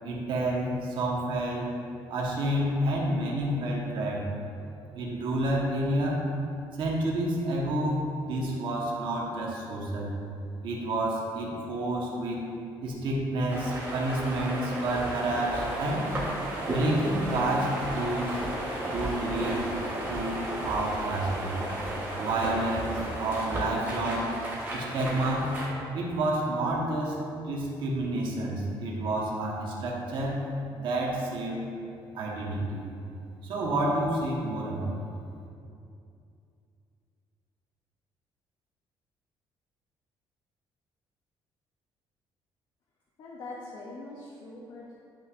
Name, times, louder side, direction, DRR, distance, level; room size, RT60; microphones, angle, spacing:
voice 1, 0.0-1.7 2.1-4.3 4.9-6.2 6.8-10.1 10.6-12.4 12.8-16.1 16.6-18.4 18.9-19.6 20.1-21.5 22.2-24.4 24.7-25.5 25.9-27.1 27.4-30.4 30.8-31.7 32.1-32.8 33.4-34.9, right 1 dB, 60° right, -3 dB, 1.3 m, -29 dB
sound 1, 13.5-25.7, right 1 dB, 20° right, 1.3 m, -33 dB
voice 2, 43.2-44.9, left 2 dB, 55° left, -4 dB, 0.9 m, -42 dB
10.5 x 5.8 x 2.6 m, 2.5 s
cardioid pair, 175°, 9 cm